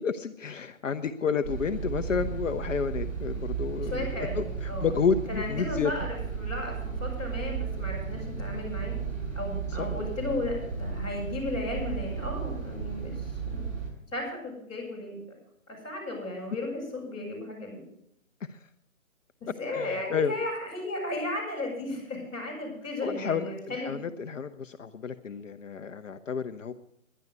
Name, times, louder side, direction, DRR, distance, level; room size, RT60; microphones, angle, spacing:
voice 1, 0.0-5.9 9.7-10.0 18.5-18.6 19.7-20.3 23.0-26.7, left 6 dB, 65° left, 9 dB, 0.8 m, -31 dB
sound 1, 1.4-13.9, right 6 dB, 15° right, 5.0 m, -34 dB
voice 2, 3.8-4.9 5.3-8.9 9.3-13.7 14.1-15.2 15.7-17.8 19.4-24.0, left 2 dB, 10° left, -8 dB, 6.7 m, -35 dB
11.0 x 10.5 x 8.0 m, 0.75 s
hypercardioid pair, 160°, 41 cm